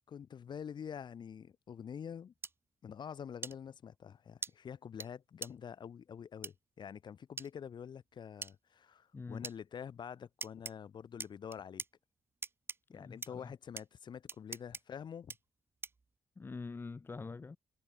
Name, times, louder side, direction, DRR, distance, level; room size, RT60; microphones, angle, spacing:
voice 1, 0.1-2.3 2.8-11.8 12.9-15.3, left 7 dB, 50° left, 4.0 m, -46 dB
sound 1, 2.4-2.5 3.4-3.5 4.4-4.5 5.0-5.1 5.4-5.5 6.4-6.5 7.4-7.5 8.4-8.5 9.4-9.6 10.4-10.7 11.2-11.9 12.4-12.8 13.2-13.3 13.8-13.9 14.3-14.8 15.3-15.4 15.8-16.1, right 4 dB, 25° right, 1.5 m, -42 dB
voice 2, 9.1-9.5 12.9-13.5 16.4-17.6, left 4 dB, 20° left, 1.0 m, -45 dB
wide cardioid pair, 175°, 10 cm